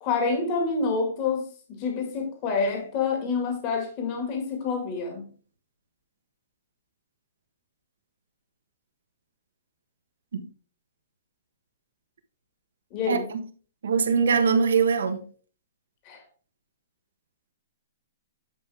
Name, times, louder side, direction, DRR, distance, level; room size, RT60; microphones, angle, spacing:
voice 1, 0.0-5.3 12.9-13.3 16.1-16.2, left 4 dB, 25° left, 2.1 m, -27 dB
voice 2, 13.1-13.4 13.8-15.2, right 5 dB, 90° right, 1.5 m, -22 dB
10.0 x 5.5 x 3.5 m
hypercardioid pair, 175°, 0 cm